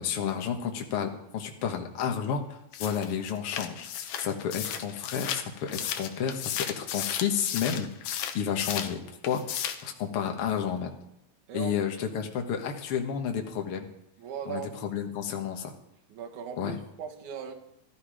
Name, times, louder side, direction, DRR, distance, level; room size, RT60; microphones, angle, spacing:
voice 1, 0.0-3.9 4.2-6.4 6.7-7.9 8.3-9.0 9.3-10.9 11.5-13.9 14.5-15.7 16.6-16.8, left 8 dB, 50° left, 3 dB, 1.9 m, -31 dB
sound 1, 2.7-8.9 9.2-9.9, left 9 dB, 70° left, 2.1 m, -34 dB
voice 2, 14.2-14.9 16.1-17.5, right 8 dB, 60° right, 2 dB, 2.8 m, -38 dB
13.5 x 13.5 x 5.0 m, 0.81 s
omnidirectional pair, 4.1 m